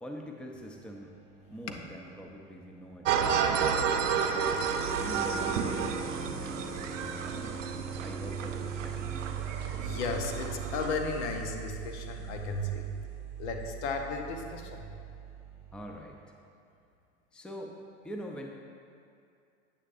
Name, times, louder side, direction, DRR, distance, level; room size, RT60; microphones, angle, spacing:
voice 1, 0.0-1.2 1.5-3.7 4.0-4.6 4.9-6.0 6.4-7.6 8.0-9.1 15.7-16.2 17.3-17.8 18.0-18.5, equal, 5° left, 1 dB, 0.6 m, -44 dB
sound 1, 0.5-16.5, right 8 dB, 30° right, 1.7 m, -42 dB
sound 2, 3.0-10.9, right 6 dB, 80° right, 0.7 m, -31 dB
voice 2, 9.8-13.0 13.4-14.9, left 3 dB, 65° left, 4 dB, 1.0 m, -34 dB
9.6 x 8.6 x 2.6 m, 2.4 s
hypercardioid pair, 90°, 38 cm